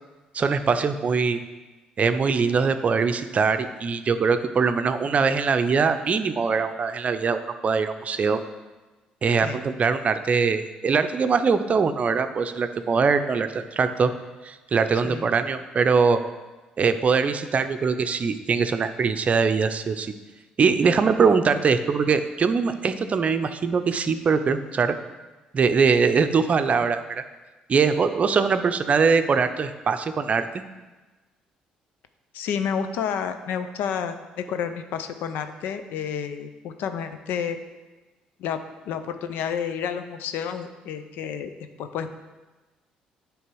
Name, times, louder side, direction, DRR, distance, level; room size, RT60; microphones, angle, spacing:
voice 1, 0.3-1.4 2.0-8.4 9.2-14.1 14.4-16.2 16.8-20.1 20.6-24.9 25.5-27.2 27.7-30.5, right 5 dB, 45° right, 9 dB, 0.6 m, -22 dB
voice 2, 32.3-37.6 38.4-41.5 41.8-42.1, left 7 dB, 75° left, 9 dB, 0.6 m, -30 dB
9.3 x 3.4 x 6.2 m, 1.2 s
hypercardioid pair, 60°, 3 cm